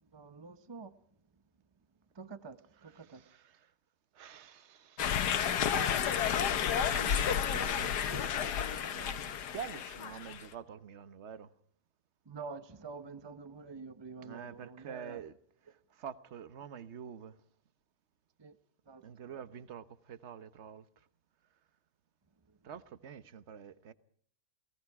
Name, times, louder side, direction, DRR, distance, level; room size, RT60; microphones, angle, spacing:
voice 1, 0.1-0.9 2.1-3.2 12.2-15.2 18.4-18.6 18.9-19.1 22.5-22.6, right 4 dB, 20° right, 0.9 m, -47 dB
voice 2, 2.9-3.7 4.1-5.6 6.7-8.5 8.9-11.5 14.2-15.3 15.9-17.4 19.0-20.8 22.6-23.9, right 8 dB, 45° right, 1.2 m, -47 dB
sound 1, 5.0-10.4, left 8 dB, 70° left, 1.6 m, -31 dB
29.5 x 18.5 x 4.8 m
omnidirectional pair, 1.8 m